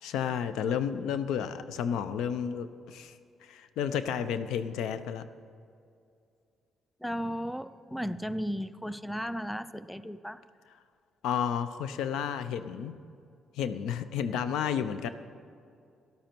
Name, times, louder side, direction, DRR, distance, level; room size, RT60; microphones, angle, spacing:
voice 1, 0.0-3.2 3.4-5.2 11.2-13.0 13.5-15.1, left 8 dB, 85° left, 12 dB, 0.5 m, -31 dB
voice 2, 7.0-10.4, equal, 5° left, 15 dB, 0.4 m, -35 dB
12.5 x 12.0 x 4.5 m, 2.4 s
cardioid pair, 90°, 0 cm